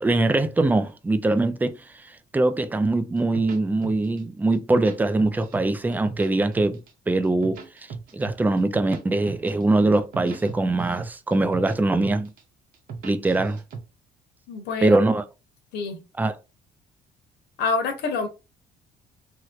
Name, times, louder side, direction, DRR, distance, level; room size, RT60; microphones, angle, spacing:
voice 1, 0.0-1.8 2.0-6.8 7.1-7.6 8.1-12.3 13.0-13.6 14.8-15.2 16.2-16.3, right 2 dB, 10° right, 0.4 m, -22 dB
sound 1, 2.8-4.2 4.5-5.7 5.9-6.9 7.2-9.0 9.3-9.6 9.9-11.8 12.0-12.4 12.7-13.8, right 5 dB, 55° right, 0.9 m, -37 dB
voice 2, 14.5-15.0 15.7-16.0 17.6-18.3, left 4 dB, 85° left, 1.1 m, -26 dB
3.1 x 2.8 x 2.4 m
cardioid pair, 110°, 17 cm